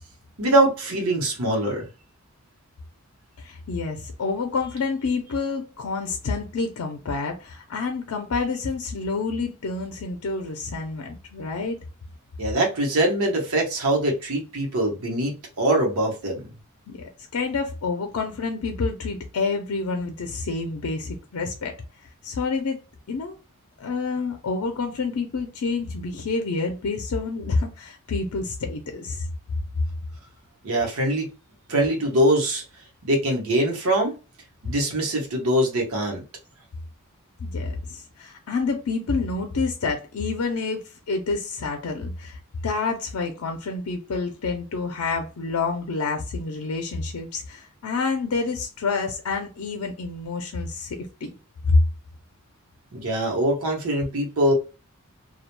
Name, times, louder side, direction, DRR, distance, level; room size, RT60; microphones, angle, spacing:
voice 1, 0.4-1.9 12.4-16.5 30.6-31.3 31.7-32.6 33.0-34.1 34.6-36.2 52.9-54.5, right 1 dB, 85° right, 0.9 m, -23 dB
voice 2, 3.4-11.8 16.9-21.7 22.2-22.8 23.1-23.4 23.8-29.3 37.4-51.3 51.6-51.8, left 4 dB, 80° left, 0.5 m, -28 dB
2.3 x 2.1 x 3.0 m
head